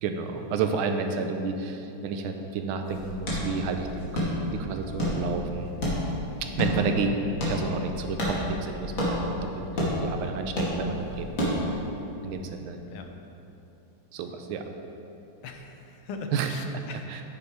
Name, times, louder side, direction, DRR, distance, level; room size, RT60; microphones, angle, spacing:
voice 1, 0.0-4.2 4.5-5.7 6.4-7.2 7.5-9.6 10.0-11.8 12.2-12.8 14.1-14.7 16.3-16.5 17.1-17.2, right 5 dB, 85° right, 6 dB, 1.5 m, -31 dB
sound 1, 2.8-11.9, left 1 dB, 40° left, 2.2 m, -30 dB
voice 2, 15.4-17.2, left 4 dB, 85° left, 5 dB, 1.7 m, -40 dB
9.3 x 7.0 x 4.8 m, 2.9 s
omnidirectional pair, 2.3 m